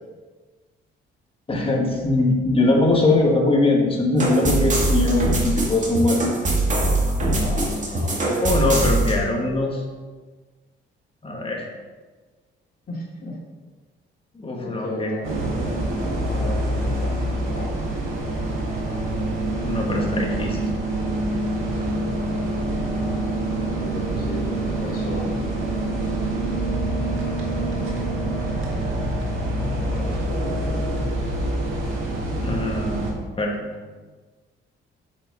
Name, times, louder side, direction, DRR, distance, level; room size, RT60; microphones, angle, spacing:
voice 1, 1.5-6.2 8.4-9.8 11.2-11.7 14.4-15.1 19.6-20.6 32.4-33.0 33.4-33.5, left 2 dB, 25° left, 0 dB, 1.7 m, -21 dB
sound 1, 4.2-9.1, right 2 dB, 40° right, 2.1 m, -22 dB
voice 2, 7.2-8.3 12.9-13.4 14.6-15.4 16.3-18.0 19.9-20.4 23.7-25.5 29.6-31.1 33.0-33.9, equal, 50° left, -4 dB, 2.6 m, -35 dB
sound 2, 15.2-33.1, right 1 dB, 85° right, 1.8 m, -26 dB
8.1 x 5.5 x 4.0 m, 1.4 s
cardioid pair, 90°, 20 cm